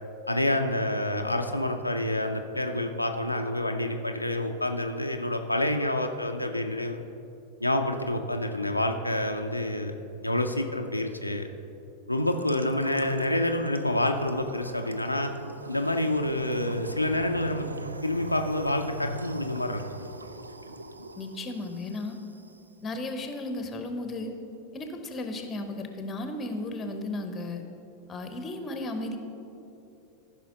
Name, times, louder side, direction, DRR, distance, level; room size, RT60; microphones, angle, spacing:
voice 1, 0.3-7.0 7.6-9.9 10.2-11.5 12.1-15.3 15.7-17.7 18.0-19.8, left 1 dB, 85° left, 4 dB, 0.5 m, -28 dB
sound 1, 12.2-22.6, right 2 dB, 80° right, 0.4 m, -40 dB
voice 2, 21.1-22.2 22.8-24.3 24.7-27.6 28.1-29.2, left 2 dB, 20° left, 6 dB, 0.9 m, -34 dB
14.5 x 5.6 x 3.8 m, 2.8 s
figure-of-eight pair, 90°, 0 cm